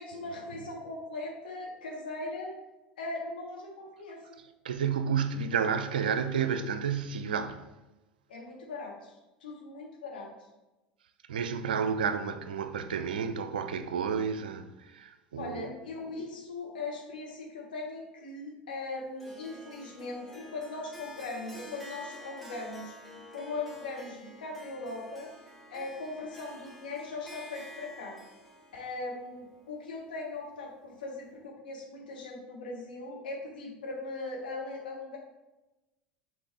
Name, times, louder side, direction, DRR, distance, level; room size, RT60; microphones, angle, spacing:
voice 1, 0.0-2.5 3.0-4.2 8.3-9.1 9.4-10.3 15.4-25.3 25.7-28.2 28.7-35.2, left 3 dB, 70° left, 1.4 m, -39 dB
voice 2, 4.6-7.7 11.3-15.7, right 6 dB, 70° right, 0.4 m, -31 dB
Harp, 19.2-30.4, equal, 5° left, 1.3 m, -49 dB
6.8 x 4.2 x 3.5 m
figure-of-eight pair, 75°, 5 cm